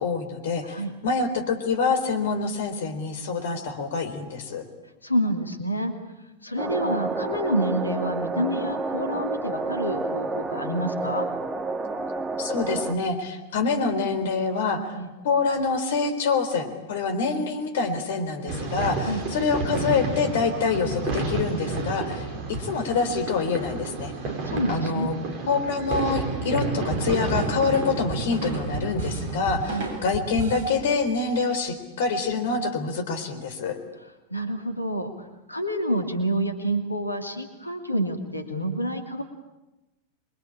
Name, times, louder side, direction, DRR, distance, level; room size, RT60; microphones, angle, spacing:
voice 1, 0.0-4.6 6.6-7.1 12.4-14.9 15.2-24.1 24.7-25.1 25.5-33.8, left 4 dB, 55° left, 8 dB, 3.9 m, -26 dB
voice 2, 5.0-5.9 6.4-11.3 15.0-15.1 19.0-19.2 24.3-25.1 29.7-29.9 34.3-35.1 35.5-39.2, equal, 85° left, 6 dB, 2.7 m, -28 dB
sound 1, 6.6-12.9, right 3 dB, 20° right, 2.1 m, -30 dB
sound 2, 18.5-29.7, right 3 dB, 40° right, 5.4 m, -31 dB
sound 3, 26.9-30.7, right 3 dB, 55° right, 7.5 m, -33 dB
27.5 x 23.0 x 8.8 m, 1.0 s
figure-of-eight pair, 90°, 0 cm